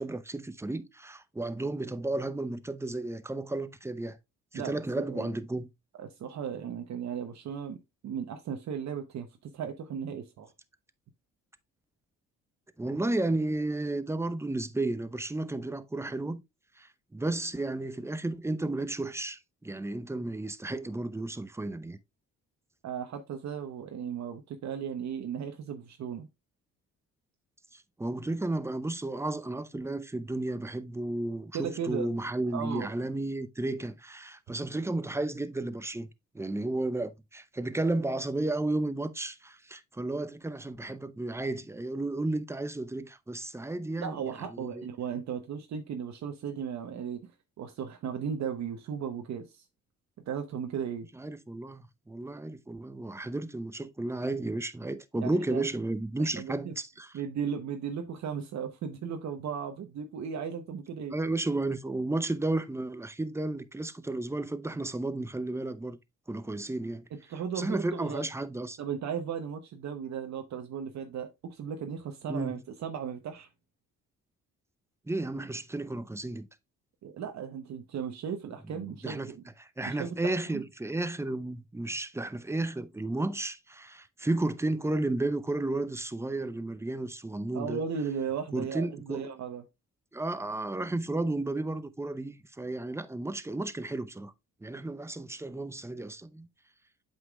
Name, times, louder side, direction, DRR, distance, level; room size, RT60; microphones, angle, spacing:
voice 1, 0.0-4.2 4.5-5.7 12.8-16.4 16.8-22.0 27.7-36.1 36.3-44.9 51.1-57.1 61.1-66.0 66.3-67.1 67.6-68.8 72.3-72.6 75.1-76.5 78.7-79.3 79.6-87.8 88.5-89.3 90.1-94.3 94.6-96.5, right 2 dB, 10° right, 0.6 m, -33 dB
voice 2, 4.5-5.3 6.0-10.5 22.8-26.3 31.5-32.1 32.5-32.9 44.0-47.3 47.6-49.6 50.3-51.1 55.2-55.6 56.2-56.7 57.1-61.1 67.1-68.2 68.8-73.5 77.0-79.4 79.8-80.6 87.5-89.6, right 7 dB, 65° right, 0.9 m, -36 dB
8.0 x 5.6 x 2.3 m
cardioid pair, 90°, 30 cm